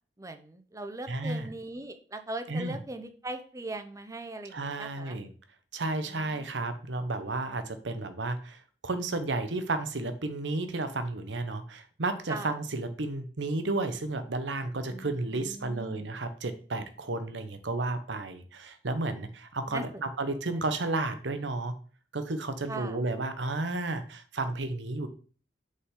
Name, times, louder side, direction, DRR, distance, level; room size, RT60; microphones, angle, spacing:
voice 1, 0.2-5.2 6.0-6.6 12.3-12.5 14.9-15.1 15.4-16.2 19.7-20.4 22.7-23.0, right 2 dB, 20° right, 7 dB, 0.7 m, -40 dB
voice 2, 1.1-1.5 2.5-2.8 4.5-5.3 5.7-21.8 22.1-25.1, right 2 dB, 75° right, 9 dB, 0.9 m, -32 dB
6.6 x 5.5 x 3.7 m, 0.40 s
head